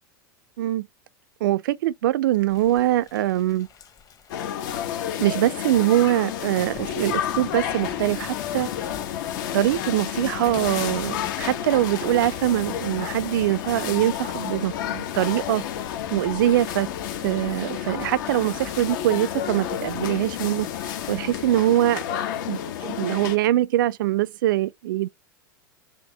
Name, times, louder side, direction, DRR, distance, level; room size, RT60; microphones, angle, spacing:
voice 1, 1.4-3.7 5.2-8.7 9.5-15.6 16.1-16.9 17.2-20.7 21.1-22.0 22.5-25.1, right 14 dB, 70° right, 0.5 m, -23 dB
Thunder / Rain, 2.5-21.6, left 7 dB, 30° left, 1.1 m, -45 dB
sound 1, 4.3-23.4, left 10 dB, 65° left, 1.1 m, -31 dB
4.5 x 3.0 x 3.8 m
hypercardioid pair, 95°, 11 cm